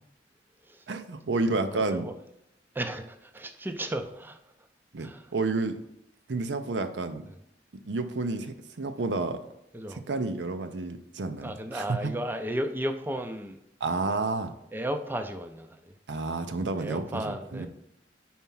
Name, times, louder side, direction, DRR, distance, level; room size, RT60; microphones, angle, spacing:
voice 1, 0.9-2.1 4.9-5.8 6.3-7.3 7.9-9.4 9.9-12.1 13.8-14.5 16.1-17.7, right 3 dB, 75° right, 9 dB, 0.6 m, -30 dB
voice 2, 1.6-2.1 2.7-4.4 5.0-5.3 7.3-7.4 9.7-10.0 11.4-13.6 14.7-15.9 16.8-17.7, right 1 dB, 10° right, 7 dB, 0.4 m, -34 dB
4.6 x 4.4 x 5.4 m, 0.81 s
head